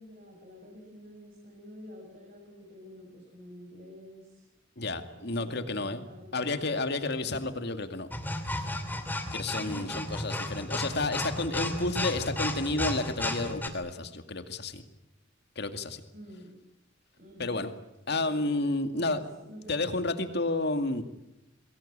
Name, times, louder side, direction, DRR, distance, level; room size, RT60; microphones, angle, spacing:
voice 1, 0.0-4.5 5.1-6.5 7.2-7.4 9.5-9.9 16.1-16.5 17.2-17.6 18.2-18.4 18.9-20.3, left 1 dB, 45° right, 0 dB, 6.4 m, -48 dB
voice 2, 4.8-6.0 6.3-8.1 8.5-8.7 9.3-14.8 15.6-16.0 17.4-17.7 18.1-19.2 19.7-21.0, left 2 dB, 55° left, 8 dB, 2.3 m, -31 dB
sound 1, 8.1-13.7, left 1 dB, 10° left, 2.7 m, -33 dB
28.0 x 21.0 x 8.8 m, 0.89 s
head